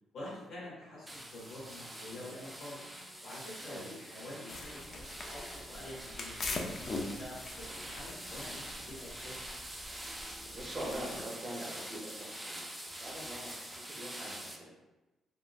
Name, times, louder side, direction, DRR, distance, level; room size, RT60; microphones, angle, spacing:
voice 1, 0.1-2.7 3.2-6.5 7.0-9.4, left 1 dB, 70° left, -6 dB, 1.5 m, -47 dB
sound 1, 0.7-13.1, right 1 dB, 30° left, 1.1 m, -61 dB
sound 2, 1.1-14.6, right 1 dB, 5° right, 0.5 m, -45 dB
sound 3, 4.5-11.2, left 2 dB, 45° left, 0.5 m, -43 dB
voice 2, 10.5-14.7, right 1 dB, 40° right, -2 dB, 0.8 m, -43 dB
3.5 x 2.4 x 2.4 m, 1.1 s
cardioid pair, 90°, 0 cm